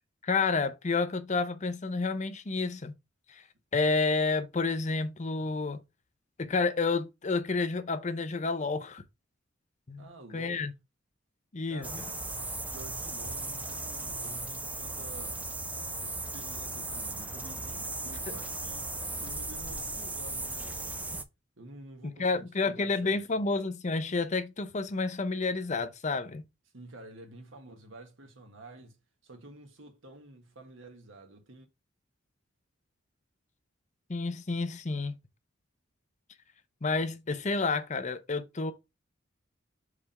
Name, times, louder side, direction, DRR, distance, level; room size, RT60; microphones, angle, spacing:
voice 1, 0.2-2.9 3.3-3.4 3.7-5.8 6.4-9.0 9.9-10.1 10.3-10.7 11.5-12.0 22.0-26.4 34.1-35.1 36.8-38.7, left 3 dB, 35° left, 0.7 m, -30 dB
voice 2, 10.0-10.7 11.7-12.0 12.6-15.5 16.0-18.9 19.2-21.1 21.6-23.5 26.7-31.7, right 2 dB, 75° right, 1.6 m, -50 dB
sound 1, 11.8-21.2, right 2 dB, 10° right, 0.5 m, -37 dB
4.9 x 3.6 x 5.4 m
head